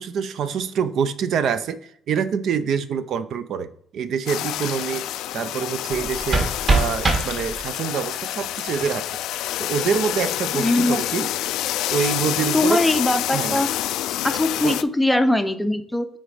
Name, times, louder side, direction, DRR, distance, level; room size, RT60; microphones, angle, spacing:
voice 1, 0.0-5.1 5.3-9.1 9.6-11.3 11.9-12.8 13.3-13.6 14.6-14.8, right 7 dB, 60° right, 12 dB, 0.5 m, -26 dB
sound 1, 4.3-14.8, left 13 dB, 80° left, 0.3 m, -27 dB
sound 2, 5.9-7.9, right 2 dB, 35° right, 1.7 m, -23 dB
voice 2, 10.5-11.2 12.5-13.7 14.2-16.1, left 1 dB, 5° left, 8 dB, 0.5 m, -21 dB
7.8 x 4.2 x 5.0 m, 0.67 s
cardioid pair, 135°, 0 cm